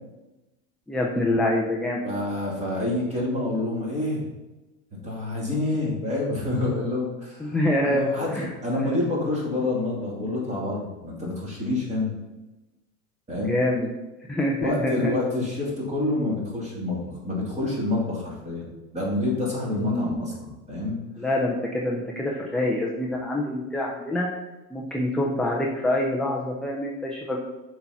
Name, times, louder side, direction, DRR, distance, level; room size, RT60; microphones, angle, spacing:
voice 1, 0.9-2.0 7.4-8.1 8.3-8.5 13.5-13.9 14.3-15.1 19.8-20.3 21.2-24.3 24.7-27.4, left 1 dB, ahead, -2 dB, 0.4 m, -26 dB
voice 2, 2.0-4.2 4.9-7.6 7.8-12.1 13.3-13.6 14.6-18.7 18.9-21.0, left 2 dB, 15° right, -4 dB, 2.7 m, -27 dB
6.8 x 4.2 x 5.8 m, 1.1 s
supercardioid pair, 135°, 42 cm